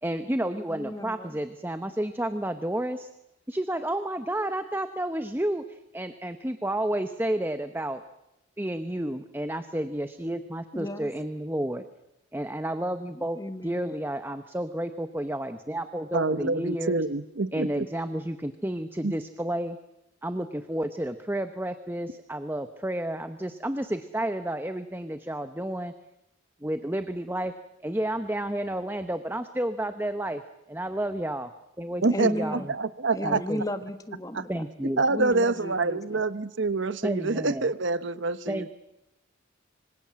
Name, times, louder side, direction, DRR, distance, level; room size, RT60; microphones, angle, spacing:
voice 1, 0.0-3.1 3.5-8.0 8.6-11.8 12.3-17.0 17.5-19.8 20.2-25.9 26.6-27.5 27.8-30.4 30.7-31.5 31.8-32.7 33.2-33.6 34.5-35.0 37.0-37.7 38.5-38.7, right 1 dB, 10° right, 9 dB, 0.9 m, -31 dB
voice 2, 0.7-1.4 10.7-11.1 13.2-13.9 32.1-32.7 33.1-34.6 35.1-36.2, left 1 dB, 15° left, 9 dB, 1.5 m, -34 dB
voice 3, 16.1-17.9 19.0-19.1 32.0-33.4 34.3-34.4 35.0-38.7, right 3 dB, 60° right, 14 dB, 0.9 m, -26 dB
26.0 x 25.5 x 7.5 m, 0.90 s
head